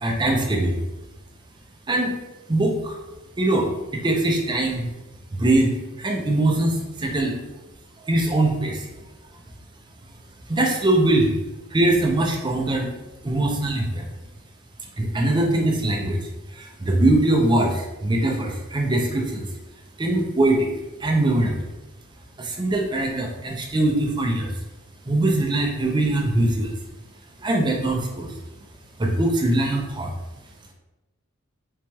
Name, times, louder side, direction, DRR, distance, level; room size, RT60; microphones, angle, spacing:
voice 1, 0.0-0.8 1.9-2.2 2.5-3.0 3.4-4.9 5.3-7.4 8.0-8.9 10.5-11.3 11.7-12.9 13.2-14.1 15.0-16.2 16.5-19.5 20.0-20.7 21.0-21.6 22.4-24.5 25.1-26.7 27.4-28.3 29.0-30.1, right 1 dB, 20° right, 1 dB, 0.4 m, -22 dB
4.0 x 3.0 x 2.2 m, 1.0 s
head